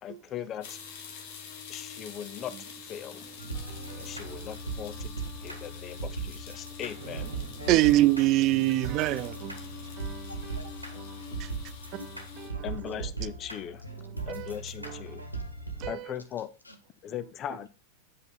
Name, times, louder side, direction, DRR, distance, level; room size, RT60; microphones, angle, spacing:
voice 1, 0.0-0.8 1.7-3.2 4.0-5.1 5.4-7.3 12.6-13.8 14.3-15.2 15.9-16.5 17.0-17.7, left 10 dB, 30° left, 0.5 m, -39 dB
sound 1, 0.6-12.5, left 7 dB, 50° left, 1.3 m, -46 dB
sound 2, 3.2-6.6 6.9-9.6, right 6 dB, 60° right, 1.2 m, -51 dB
sound 3, 3.4-15.9, right 3 dB, 85° right, 1.1 m, -39 dB
voice 2, 3.6-4.5 7.7-9.6 10.0-10.3 11.1-11.5 11.9-12.0 12.4-12.9 14.1-14.5 14.8-15.2 15.8-16.1, right 17 dB, 40° right, 0.3 m, -27 dB
voice 3, 7.6-7.9 10.3-11.1 11.9-12.1 12.5-12.6 16.6-17.1, left 2 dB, 85° left, 1.1 m, -48 dB
8.0 x 5.2 x 4.0 m
figure-of-eight pair, 90°, 0 cm